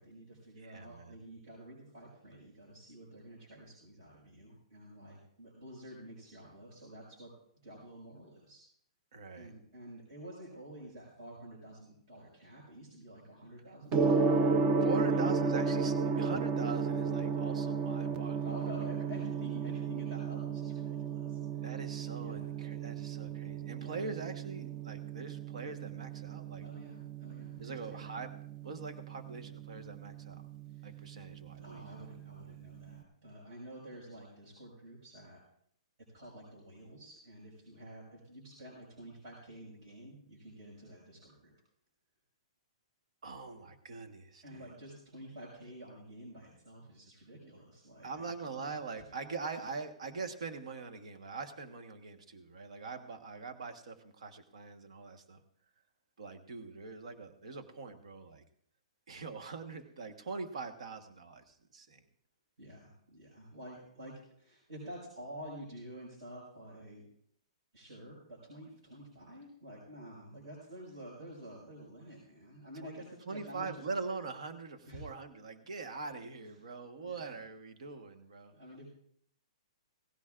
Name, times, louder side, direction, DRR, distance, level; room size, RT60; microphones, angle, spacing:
voice 1, 0.0-7.3 7.6-8.6 9.3-14.4 15.0-15.2 18.4-21.6 22.1-22.5 23.8-24.1 26.6-28.1 30.6-31.1 31.6-35.4 36.1-41.5 44.4-48.7 49.1-49.2 49.5-49.6 62.6-67.1 67.7-73.7 74.9-75.0 76.4-76.6 77.0-77.4 78.5-78.9, right 1 dB, 45° right, -5 dB, 5.6 m, -50 dB
voice 2, 0.6-1.2 9.1-9.5 14.8-18.5 19.1-19.2 21.6-26.6 27.6-28.3 28.6-30.4 30.8-31.8 43.2-44.7 48.0-55.4 56.2-58.4 59.1-62.0 72.8-73.0 73.3-78.5, right 4 dB, 70° right, 6 dB, 1.4 m, -43 dB
Gong, 13.9-32.9, right 4 dB, 20° right, 0.6 m, -34 dB
18.0 x 15.5 x 2.5 m, 0.65 s
hypercardioid pair, 170°, 4 cm